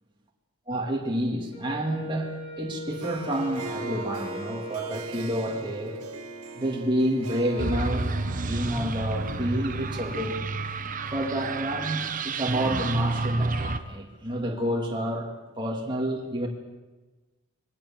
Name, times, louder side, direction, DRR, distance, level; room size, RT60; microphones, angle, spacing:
voice 1, 0.7-6.0 6.6-10.5 11.1-16.5, right 1 dB, 20° right, -1 dB, 2.3 m, -29 dB
Wind instrument woodwind instrument, 1.5-6.2, left 1 dB, 80° left, 7.7 m, -41 dB
Harp, 3.0-10.5, right 2 dB, 85° right, 1.9 m, -40 dB
sound 1, 7.6-13.8, right 3 dB, 35° right, 0.9 m, -29 dB
21.5 x 17.0 x 7.3 m, 1.2 s
head